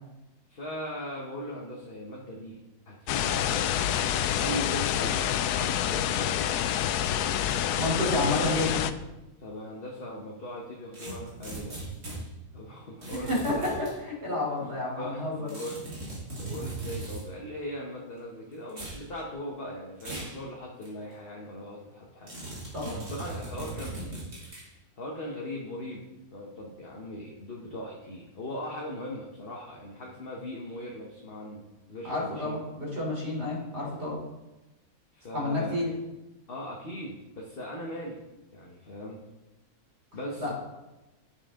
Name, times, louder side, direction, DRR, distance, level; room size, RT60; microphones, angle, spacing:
voice 1, 0.5-2.6 2.9-4.0 4.4-6.6 7.7-8.6 9.4-11.8 12.5-13.7 14.4-14.5 14.9-15.8 16.4-22.3 22.9-24.2 25.0-26.0 26.3-31.6 31.9-32.6 35.1-35.7 36.5-38.2 38.5-39.2 40.1-40.5, left 1 dB, 40° left, -2 dB, 1.4 m, -39 dB
sound 1, 3.1-8.9, left 10 dB, 85° left, 1.1 m, -27 dB
voice 2, 7.7-8.8 13.3-15.5 22.7-22.9 32.0-34.2 35.3-35.9 40.4-40.5, left 2 dB, 40° right, -3 dB, 3.8 m, -30 dB
sound 2, 10.9-12.2 13.0-13.9 15.5-17.3 18.7-19.0 20.0-20.4 20.8-20.9 22.3-24.7, right 2 dB, 75° right, 3.4 m, -38 dB
11.0 x 7.4 x 3.7 m, 1.0 s
omnidirectional pair, 1.6 m